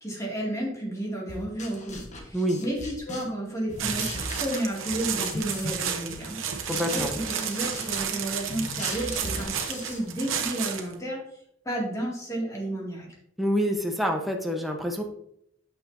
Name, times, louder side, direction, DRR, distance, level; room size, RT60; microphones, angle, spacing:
voice 1, 0.0-4.1 4.4-11.2 11.6-13.1, right 1 dB, 15° left, -3 dB, 2.1 m, -32 dB
sound 1, 1.3-3.4 3.7-5.8 6.1-10.4, left 2 dB, 35° left, 1.2 m, -39 dB
sound 2, 3.8-10.9, right 8 dB, 75° right, 0.9 m, -32 dB
voice 2, 6.7-7.1 13.4-15.0, equal, ahead, 1 dB, 0.9 m, -27 dB
8.6 x 6.6 x 2.6 m, 0.73 s
head